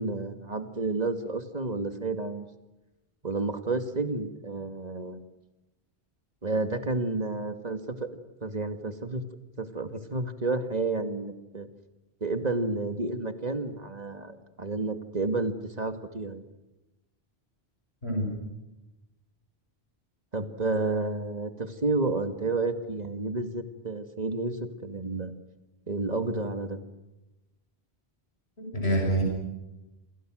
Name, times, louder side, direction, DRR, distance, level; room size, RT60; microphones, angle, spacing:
voice 1, 0.0-2.5 3.2-5.2 6.4-8.1 8.4-9.2 9.6-11.7 12.2-16.4 20.3-25.3 25.9-26.8, right 3 dB, 40° right, 9 dB, 2.3 m, -30 dB
voice 2, 18.0-18.3 28.6-29.2, right 1 dB, 85° left, 1 dB, 7.2 m, -26 dB
29.0 x 26.5 x 6.4 m, 1.0 s
omnidirectional pair, 1.1 m